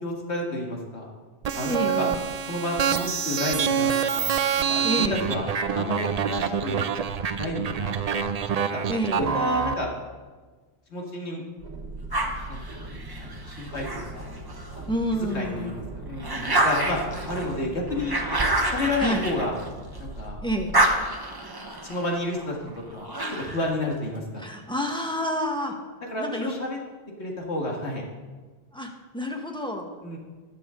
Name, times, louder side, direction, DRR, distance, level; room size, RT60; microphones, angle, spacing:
voice 1, 0.0-1.1 1.5-2.1 2.4-4.4 4.7-5.5 5.7-6.8 7.4-8.4 8.7-8.8 9.2-9.9 10.9-11.4 12.5-14.3 14.8-18.2 18.6-19.5 20.0-20.4 21.8-24.4 26.0-26.8 27.2-28.0 30.0-30.2, left 1 dB, 80° left, -1 dB, 2.2 m, -31 dB
sound 1, 1.4-9.7, right 7 dB, 50° right, 0.5 m, -26 dB
voice 2, 1.6-2.2 4.8-5.3 8.9-9.4 14.9-15.7 19.0-19.3 20.4-20.8 24.4-25.7 26.2-26.5 28.7-29.9, equal, 5° left, 1 dB, 1.3 m, -29 dB
sound 2, 11.6-21.0, right 1 dB, 75° right, 1.6 m, -40 dB
sound 3, 12.1-14.8 15.3-20.1 20.4-23.7, right 1 dB, 20° right, 1.0 m, -28 dB
20.5 x 6.9 x 3.8 m, 1.4 s
omnidirectional pair, 1.1 m